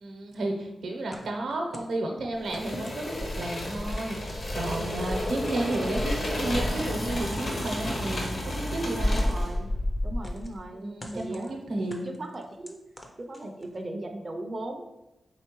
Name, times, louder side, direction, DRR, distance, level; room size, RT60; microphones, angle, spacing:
voice 1, 0.0-9.3 10.7-12.1, right 2 dB, 85° right, 1 dB, 0.8 m, -32 dB
sound 1, 1.1-2.0 2.5-3.2 4.0-4.9 5.6-6.1 7.0-7.6 8.2-8.7 9.1-9.4 10.2-10.6 11.0-11.5 11.9-13.8, left 1 dB, 25° left, 0.5 m, -46 dB
sound 2, 2.4-9.6, left 1 dB, 55° left, 1.1 m, -32 dB
Insect, 3.1-5.4 5.9-7.3 9.0-10.6, left 1 dB, 75° left, 1.6 m, -31 dB
voice 2, 4.7-5.4 9.1-9.7 10.0-12.8 13.2-14.8, right 1 dB, 30° right, 3 dB, 0.4 m, -38 dB
4.4 x 3.6 x 3.0 m, 0.95 s
wide cardioid pair, 130°, 0 cm